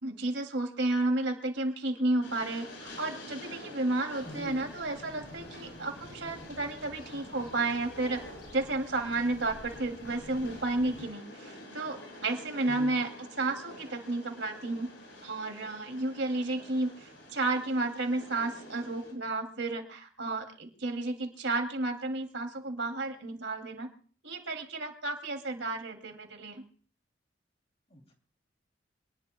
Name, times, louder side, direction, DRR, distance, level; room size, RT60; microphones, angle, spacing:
voice 1, 0.0-8.2 8.5-13.1 13.4-14.9 15.2-23.9 24.2-26.6, right 2 dB, 90° right, 4 dB, 2.5 m, -32 dB
Train, 2.2-19.1, left 1 dB, 85° left, 5.9 m, -48 dB
sound 1, 4.2-11.1, left 1 dB, 65° left, 6.4 m, -51 dB
voice 2, 4.2-4.7 12.7-13.1 27.9-28.1, equal, 35° left, 3 dB, 2.7 m, -44 dB
26.5 x 19.5 x 2.2 m, 0.44 s
head